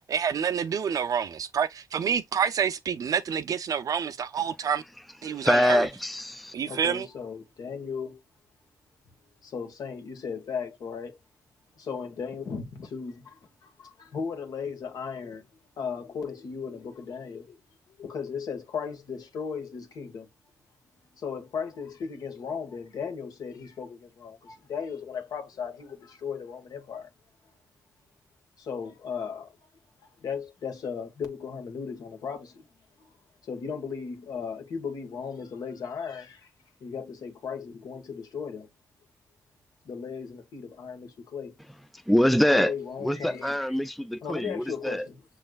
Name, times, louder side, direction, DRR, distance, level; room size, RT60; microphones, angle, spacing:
voice 1, 0.1-4.8 5.2-5.9 6.5-7.1, right 7 dB, 65° right, 0.6 m, -28 dB
voice 2, 5.3-6.5 42.1-42.7 43.0-45.1, equal, ahead, 0.4 m, -24 dB
voice 3, 6.7-8.2 9.4-11.2 11.8-15.4 15.8-17.6 17.9-20.3 21.1-27.1 28.6-29.5 30.2-32.6 33.0-33.1 33.4-36.5 36.8-38.7 39.8-41.6 42.3-43.7 44.2-45.2, left 6 dB, 75° left, 1.4 m, -36 dB
6.5 x 3.2 x 2.4 m
cardioid pair, 70°, 7 cm